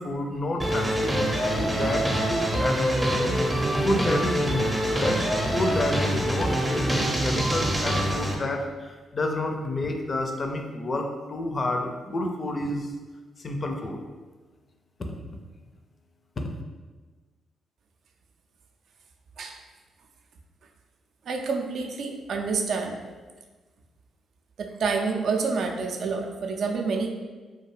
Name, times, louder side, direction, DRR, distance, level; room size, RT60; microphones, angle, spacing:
voice 1, 0.0-12.9 13.4-14.0 15.0-15.1 16.4-16.5, left 2 dB, 40° left, 3 dB, 0.4 m, -30 dB
sound 1, 0.6-8.3, right 1 dB, 15° right, 0.5 m, -25 dB
voice 2, 21.3-23.0 24.6-27.1, right 4 dB, 65° right, 2 dB, 0.3 m, -28 dB
2.3 x 2.3 x 3.1 m, 1.3 s
hypercardioid pair, 45°, 0 cm